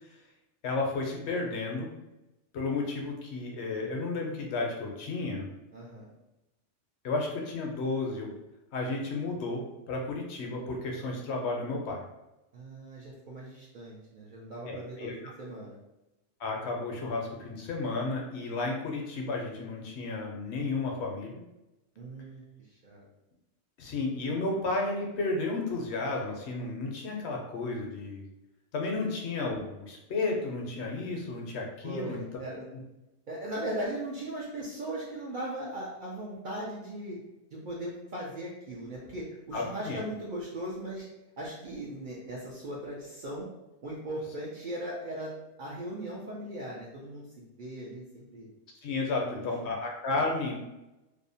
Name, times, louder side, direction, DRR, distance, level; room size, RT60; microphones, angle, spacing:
voice 1, 0.6-1.9 2.5-5.5 7.0-8.3 8.7-12.0 14.6-15.1 16.4-21.4 23.8-28.2 28.7-32.2 39.5-40.0 48.8-50.6, left 3 dB, 70° left, 0 dB, 0.8 m, -32 dB
voice 2, 5.7-6.1 12.5-15.8 22.0-22.4 22.7-23.1 31.8-32.6 33.3-37.2 37.5-41.1 41.4-43.5 43.8-45.3 45.6-48.5 49.2-49.7, right 1 dB, 60° right, -4 dB, 0.5 m, -38 dB
2.6 x 2.0 x 2.6 m, 0.95 s
omnidirectional pair, 1.2 m